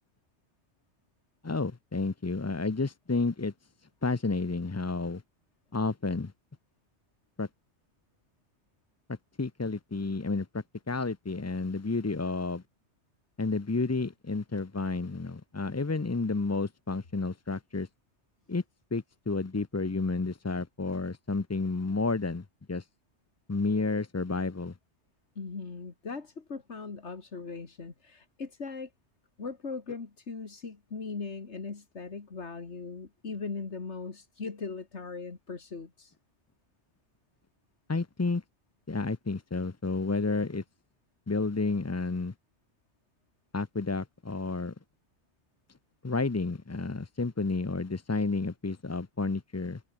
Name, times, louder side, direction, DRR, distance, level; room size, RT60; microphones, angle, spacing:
voice 1, 1.4-3.5 4.0-5.2 5.7-6.3 7.4-7.5 9.1-12.6 13.4-17.9 18.5-18.6 18.9-22.8 23.5-24.7 37.9-38.4 38.9-40.6 41.3-42.3 43.5-44.7 46.0-49.8, left 3 dB, 20° left, 0.4 m, -31 dB
voice 2, 25.4-28.9 29.4-36.1, left 4 dB, 85° left, 2.5 m, -39 dB
omnidirectional pair, 1.1 m